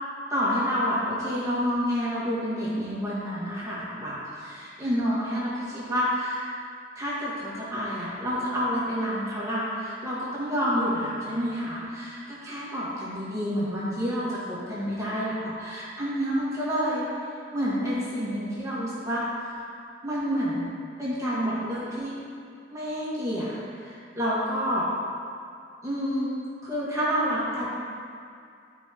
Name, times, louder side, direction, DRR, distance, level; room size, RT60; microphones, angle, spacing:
voice 1, 0.3-6.5 6.9-17.1 17.5-19.7 20.0-20.7 21.0-22.1 22.7-24.9 25.8-26.3 26.6-27.7, equal, 15° right, -9 dB, 1.6 m, -29 dB
12.0 x 4.7 x 3.0 m, 2.4 s
head